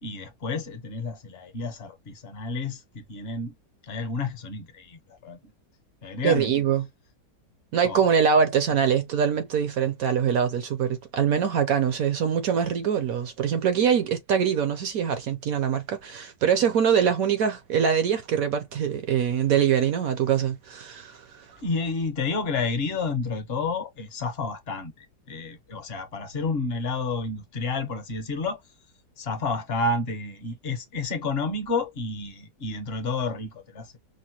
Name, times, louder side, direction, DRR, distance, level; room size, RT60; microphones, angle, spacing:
voice 1, 0.0-3.5 3.8-5.4 6.0-6.5 7.8-8.1 21.6-28.6 29.2-33.9, left 3 dB, 45° left, 0.9 m, -30 dB
voice 2, 6.2-6.8 7.7-21.6, right 7 dB, 65° right, 0.9 m, -23 dB
5.2 x 2.1 x 2.8 m
omnidirectional pair, 1.9 m